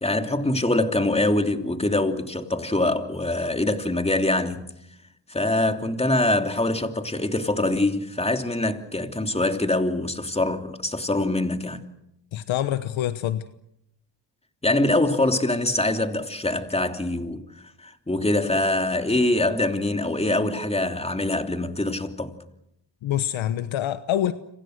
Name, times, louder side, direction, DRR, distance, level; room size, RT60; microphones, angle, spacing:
voice 1, 0.0-4.7 5.3-11.8 14.6-22.3, left 2 dB, 15° left, 3.1 m, -24 dB
voice 2, 12.3-13.4 23.0-24.3, left 11 dB, 85° left, 1.2 m, -25 dB
29.0 x 26.5 x 6.6 m
cardioid pair, 70°, 46 cm